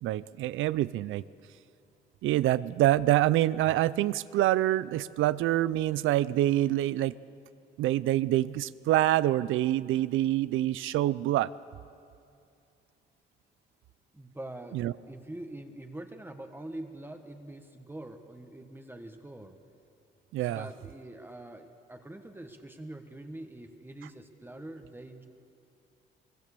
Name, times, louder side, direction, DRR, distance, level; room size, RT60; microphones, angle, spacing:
voice 1, 0.0-1.2 2.2-7.1 7.8-11.5 14.7-14.9 20.3-20.7, right 14 dB, 85° right, 18 dB, 0.5 m, -26 dB
voice 2, 14.1-19.6 20.4-25.3, right 1 dB, 10° right, 5 dB, 1.6 m, -44 dB
23.0 x 21.0 x 6.9 m, 2.6 s
cardioid pair, 90°, 20 cm